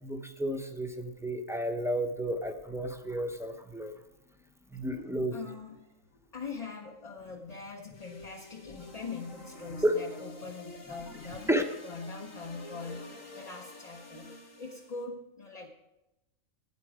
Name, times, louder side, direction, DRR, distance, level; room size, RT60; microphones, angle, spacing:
voice 1, 0.0-3.9 4.7-5.4 9.8-10.0 11.5-11.6, right 1 dB, 5° right, 5 dB, 0.7 m, -31 dB
voice 2, 5.3-11.5 11.8-15.7, left 4 dB, 35° left, 2 dB, 0.9 m, -42 dB
sound 1, 7.9-15.0, left 2 dB, 75° left, 2.1 m, -48 dB
14.5 x 9.0 x 4.9 m, 0.97 s
omnidirectional pair, 1.4 m